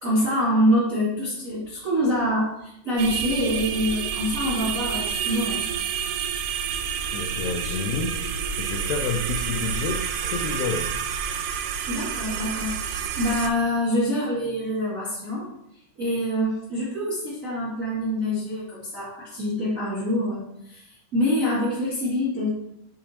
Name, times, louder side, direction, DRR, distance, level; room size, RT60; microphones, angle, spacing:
voice 1, 0.0-5.6 11.9-15.5 16.0-22.5, equal, 40° right, -8 dB, 1.2 m, -25 dB
sound 1, 3.0-13.5, right 7 dB, 85° right, 2.5 m, -29 dB
sound 2, 6.7-12.0, left 2 dB, 70° left, 2.7 m, -47 dB
voice 2, 7.1-8.2 8.6-10.9, left 5 dB, 85° left, 3 dB, 2.0 m, -29 dB
6.4 x 4.0 x 4.2 m, 0.79 s
omnidirectional pair, 4.7 m